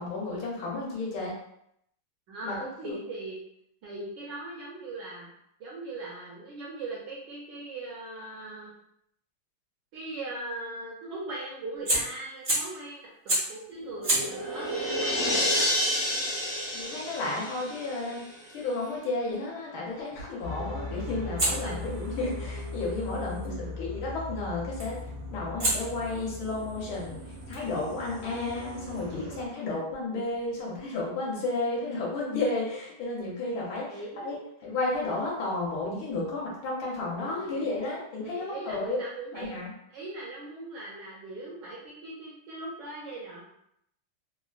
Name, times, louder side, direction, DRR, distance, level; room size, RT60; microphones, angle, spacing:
voice 1, 0.0-1.3 2.4-2.6 2.9-3.0 16.7-18.2 18.5-25.0 25.3-27.2 27.5-34.0 34.2-39.0 39.3-39.7, left 2 dB, 75° left, -4 dB, 1.5 m, -32 dB
voice 2, 2.3-3.4 3.8-5.3 5.6-8.7 9.9-15.8 21.5-21.8 23.0-23.8 33.9-34.5 37.0-37.7 38.2-39.6 39.9-43.4, right 2 dB, 70° right, -4 dB, 1.1 m, -40 dB
Fire, 11.7-12.8 13.3-13.6 14.0-18.9 21.4-23.5 24.8-25.1 25.6-29.0, right 1 dB, 55° right, 0.5 m, -34 dB
sound 1, 13.8-18.4, left 1 dB, 50° left, 0.6 m, -30 dB
sound 2, 20.4-29.5, left 2 dB, 90° right, 1.6 m, -39 dB
3.8 x 2.1 x 2.3 m, 0.74 s
omnidirectional pair, 2.4 m